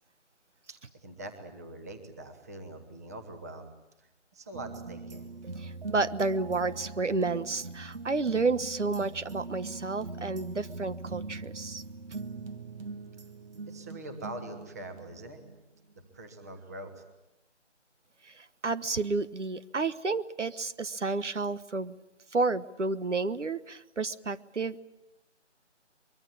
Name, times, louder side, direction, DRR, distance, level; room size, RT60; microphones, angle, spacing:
voice 1, 0.7-3.7 4.0-5.3 13.7-15.4 15.9-17.0, right 2 dB, 15° right, 7 dB, 1.3 m, -44 dB
sound 1, 4.5-15.6 15.9-16.0, right 3 dB, 50° right, 1.6 m, -42 dB
voice 2, 5.6-11.8 18.2-21.9 22.3-24.8, right 3 dB, 75° right, 14 dB, 1.3 m, -31 dB
24.0 x 23.0 x 8.8 m, 0.92 s
figure-of-eight pair, 165°, 36 cm